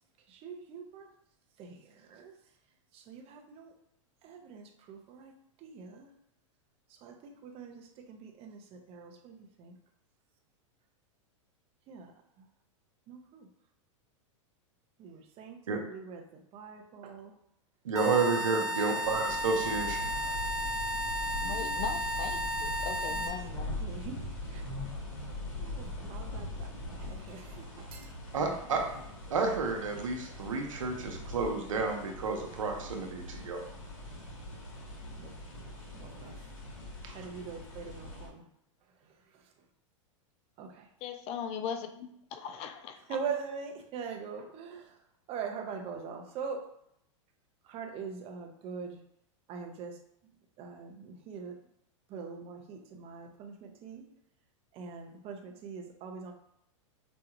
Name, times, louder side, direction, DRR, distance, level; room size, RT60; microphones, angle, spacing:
voice 1, 0.3-1.1 1.6-2.4 2.9-3.7 4.2-5.3 5.6-6.1 6.9-9.8 11.9-12.1 13.1-13.5 15.0-17.4 18.8-19.2 21.3-25.0 25.6-28.8 35.2-35.3 35.9-36.6 37.1-38.5 38.8-39.6 40.6-40.9 42.9-46.7 47.6-49.0 49.5-50.0 50.6-51.6 52.1-54.1 54.7-56.3, right 5 dB, 35° right, 0.8 m, -43 dB
voice 2, 17.8-20.1 28.3-28.8 29.3-33.7 37.0-37.2, right 4 dB, 90° right, 0.9 m, -31 dB
sound 1, 18.0-23.3, equal, 20° left, 0.8 m, -33 dB
sound 2, 19.0-38.3, left 2 dB, 85° left, 1.5 m, -42 dB
voice 3, 21.4-23.8 41.0-43.0, left 7 dB, 40° left, 0.4 m, -39 dB
5.3 x 2.3 x 3.0 m
hypercardioid pair, 120°, 16 cm